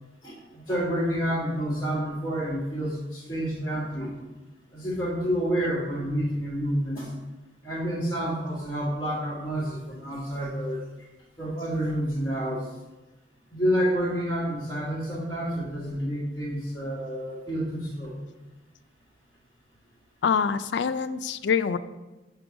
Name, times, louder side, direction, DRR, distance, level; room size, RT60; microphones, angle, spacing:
voice 1, 0.2-4.1 4.7-7.1 7.6-10.8 11.4-12.6 13.5-18.1, equal, 15° left, -12 dB, 1.8 m, -29 dB
voice 2, 20.2-21.8, left 6 dB, 75° left, 12 dB, 0.4 m, -25 dB
6.1 x 3.8 x 5.9 m, 1.1 s
head